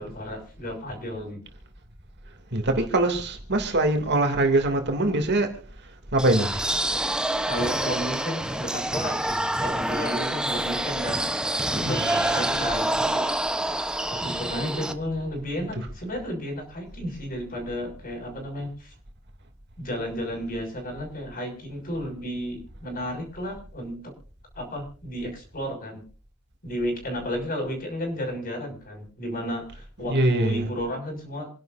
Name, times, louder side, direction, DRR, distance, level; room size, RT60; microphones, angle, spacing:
voice 1, 0.0-1.4 7.5-11.2 11.8-13.2 13.5-13.6 14.1-18.9 19.8-24.0 24.5-26.0 26.6-31.5, equal, 40° left, 6.4 m, -33 dB
voice 2, 2.5-5.5 6.1-6.8 11.7-12.5 30.1-30.6, right 2 dB, 50° right, 2.8 m, -23 dB
sound 1, 6.2-14.9, right 1 dB, 5° right, 1.0 m, -27 dB
28.0 x 11.0 x 2.7 m
head